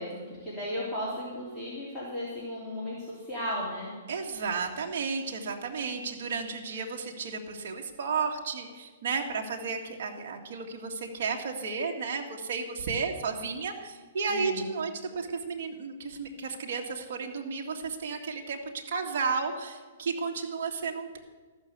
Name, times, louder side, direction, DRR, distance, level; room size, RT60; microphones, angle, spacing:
voice 1, 0.0-3.9 14.3-14.7, left 1 dB, ahead, -10 dB, 3.1 m, -35 dB
voice 2, 4.1-21.2, right 5 dB, 60° right, 1 dB, 1.8 m, -33 dB
13.5 x 6.5 x 8.0 m, 1.5 s
hypercardioid pair, 140°, 0 cm